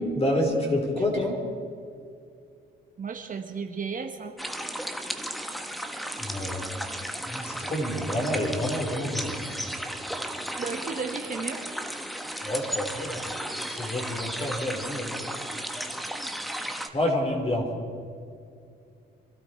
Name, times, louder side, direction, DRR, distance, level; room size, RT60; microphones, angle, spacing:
voice 1, 0.1-1.4 6.2-6.6 7.3-9.8 12.4-13.2 13.6-15.1 16.9-17.7, left 1 dB, 30° left, 1 dB, 4.1 m, -28 dB
voice 2, 3.0-4.4 10.6-11.6, right 5 dB, 45° right, 5 dB, 1.3 m, -34 dB
sound 1, 4.4-16.9, equal, ahead, 1.2 m, -34 dB
25.5 x 12.5 x 4.5 m, 2.4 s
cardioid pair, 90°, 20 cm